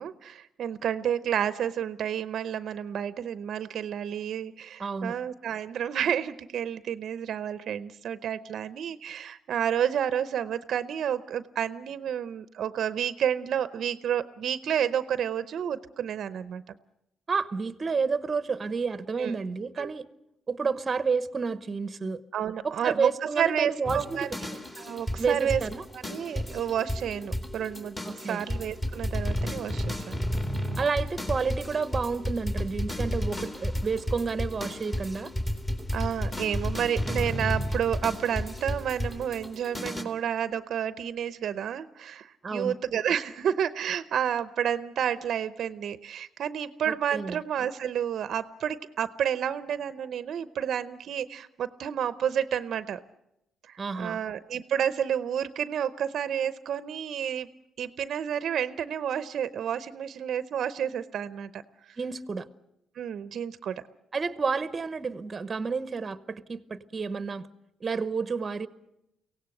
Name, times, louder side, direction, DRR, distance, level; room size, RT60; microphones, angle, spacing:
voice 1, 0.0-16.6 19.2-19.3 19.8-19.9 22.3-23.1 23.4-24.3 24.8-25.6 25.9-28.0 28.3-30.2 35.9-53.0 53.7-57.5 57.8-61.6 63.0-63.8, right 9 dB, 60° right, 14 dB, 0.7 m, -30 dB
voice 2, 4.8-5.2 17.3-20.1 20.5-22.2 22.6-24.4 25.2-25.8 28.0-28.4 30.8-35.3 42.4-42.7 46.9-47.4 53.8-54.2 62.0-62.5 64.1-67.5 67.8-68.7, right 5 dB, 25° right, 14 dB, 0.9 m, -30 dB
sound 1, 23.8-40.0, equal, 15° left, 2.3 m, -32 dB
23.5 x 17.5 x 7.8 m, 0.84 s
cardioid pair, 140°, 0 cm